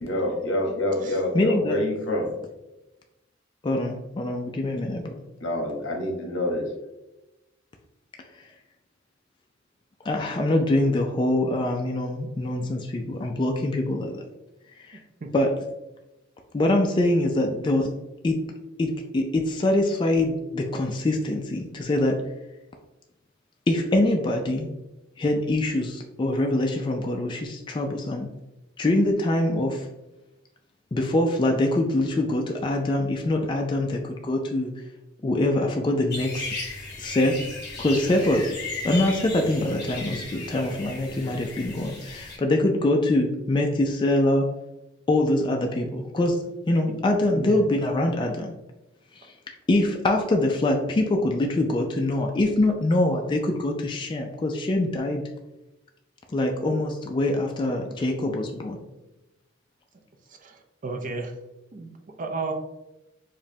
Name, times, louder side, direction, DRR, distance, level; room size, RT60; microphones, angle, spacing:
voice 1, 0.0-2.3 5.4-6.7, left 1 dB, 80° left, 2 dB, 0.8 m, -27 dB
voice 2, 1.3-1.8 3.6-5.2 10.1-14.2 14.9-15.0 15.3-15.5 16.5-17.9 18.2-18.4 18.8-22.2 23.7-24.7 25.2-28.3 28.8-29.9 30.9-34.7 35.2-36.4 37.0-37.4 37.8-38.6 38.8-44.5 45.1-46.4 46.7-48.5 49.2-49.3 49.7-55.2 56.3-58.8, left 1 dB, 25° left, 2 dB, 0.3 m, -24 dB
sound 1, 36.1-42.4, left 3 dB, 55° left, 1.0 m, -36 dB
voice 3, 47.3-47.6 60.3-61.3 61.7-61.9 62.2-62.5, right 3 dB, 45° right, 4 dB, 0.5 m, -33 dB
5.0 x 2.1 x 2.7 m, 0.97 s
head